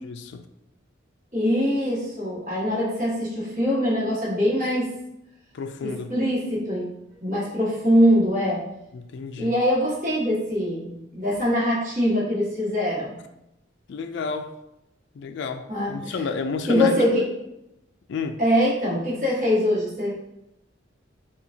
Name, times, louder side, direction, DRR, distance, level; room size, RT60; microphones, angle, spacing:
voice 1, 0.0-0.4 5.5-6.1 8.9-9.6 13.9-14.5 15.1-17.3 18.1-18.4, left 4 dB, 60° left, 7 dB, 0.3 m, -31 dB
voice 2, 1.3-4.9 5.8-6.9 7.2-8.6 9.4-13.2 15.7-16.2 16.7-17.2 18.4-20.1, equal, 40° right, -8 dB, 1.5 m, -23 dB
5.6 x 2.4 x 2.7 m, 0.87 s
head